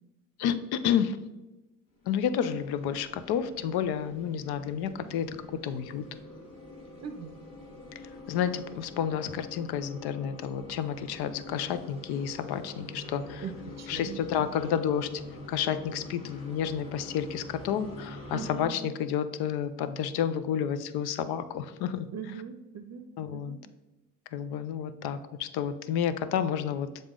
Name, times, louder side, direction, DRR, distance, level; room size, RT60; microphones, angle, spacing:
voice 1, 0.4-1.2 2.1-6.1 8.0-13.4 13.9-15.1 15.5-22.1 23.2-23.6 24.3-26.9, left 8 dB, 75° left, 12 dB, 0.6 m, -30 dB
sound 1, 2.0-18.7, left 2 dB, 55° left, 1.5 m, -46 dB
voice 2, 7.0-7.5 13.4-14.2 18.3-18.7 22.1-23.6, right 6 dB, 45° right, 8 dB, 0.6 m, -40 dB
7.0 x 3.9 x 3.7 m, 1.1 s
supercardioid pair, 55°, 39 cm